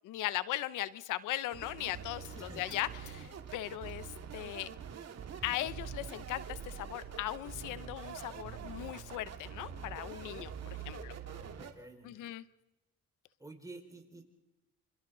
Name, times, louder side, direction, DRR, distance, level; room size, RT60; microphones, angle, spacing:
voice 1, 0.0-4.7 5.4-10.5 10.9-11.1 12.0-12.4, left 14 dB, 90° left, 16 dB, 0.8 m, -38 dB
sound 1, 1.5-11.7, right 7 dB, 60° right, 2.3 m, -45 dB
sound 2, 2.2-4.0 4.4-5.0 5.6-5.7 6.0-6.1 6.4-6.5 7.7-8.3, left 8 dB, 70° left, 2.7 m, -62 dB
voice 2, 2.4-2.8 11.3-12.3 13.4-14.3, right 2 dB, 10° right, 3 dB, 4.8 m, -51 dB
27.0 x 27.0 x 3.9 m, 0.99 s
cardioid pair, 90°, 30 cm